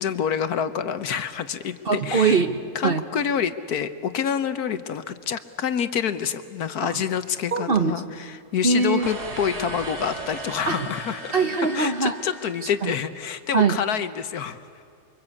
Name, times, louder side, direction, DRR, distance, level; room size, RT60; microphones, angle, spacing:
voice 1, 0.0-2.4 2.7-11.3 11.7-14.8, left 8 dB, 70° left, 11 dB, 1.5 m, -27 dB
voice 2, 1.8-3.0 6.8-7.0 7.5-7.9 8.6-9.1 10.7-10.9 11.3-12.2 12.8-12.9 13.5-13.8, right 4 dB, 40° right, 8 dB, 1.2 m, -22 dB
sound 1, 9.0-13.2, right 2 dB, 75° right, 2.8 m, -37 dB
29.0 x 24.0 x 8.5 m, 2.5 s
omnidirectional pair, 1.7 m